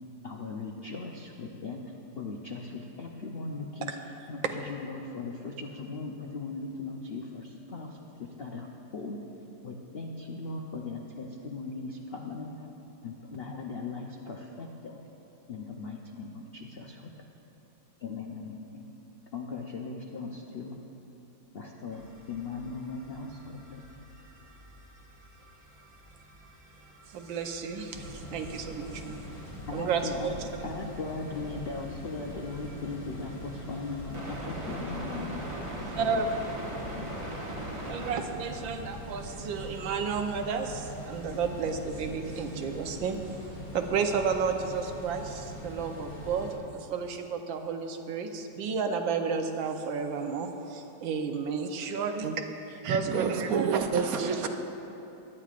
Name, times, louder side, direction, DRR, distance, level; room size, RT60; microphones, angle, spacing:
voice 1, 0.2-3.9 4.3-9.2 9.6-12.5 13.0-15.0 15.5-17.1 18.0-18.8 19.3-20.8 21.5-23.8 29.7-36.3 36.9-37.1, left 3 dB, 90° left, 0 dB, 0.5 m, -39 dB
sound 1, 21.9-41.7, right 1 dB, 25° right, 0.8 m, -45 dB
voice 2, 27.1-29.2 29.7-30.3 36.0-36.3 37.9-43.2 43.7-52.3 52.8-53.5 54.1-54.3, right 5 dB, 90° right, 5 dB, 1.5 m, -32 dB
sound 2, 27.9-46.6, equal, 65° left, 2.6 m, -42 dB
voice 3, 53.1-54.5, right 6 dB, 65° right, 5 dB, 1.0 m, -28 dB
18.5 x 11.0 x 2.5 m, 3.0 s
omnidirectional pair, 2.0 m